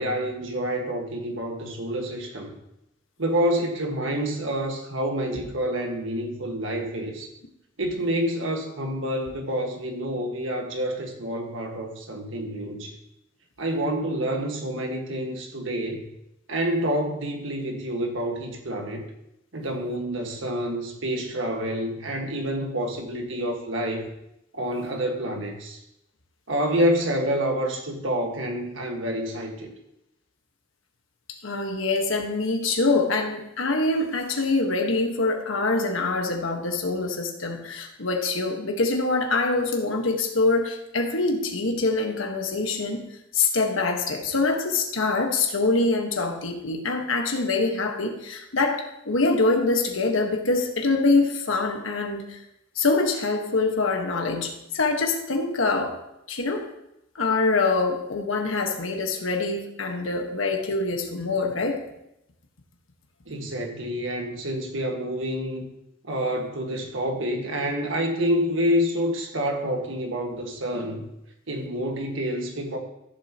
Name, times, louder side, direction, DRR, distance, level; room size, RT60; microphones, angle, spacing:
voice 1, 0.0-2.5 3.2-7.3 7.8-12.9 13.6-16.1 16.5-19.0 19.5-24.1 24.5-25.8 26.5-29.7 63.3-65.7 66.0-71.0 71.5-72.8, equal, 70° right, 2 dB, 1.7 m, -28 dB
voice 2, 31.3-43.1 43.3-52.4 52.7-56.0 56.3-56.7 57.1-61.8, left 3 dB, 85° left, 3 dB, 1.5 m, -24 dB
14.5 x 7.4 x 3.0 m, 0.84 s
head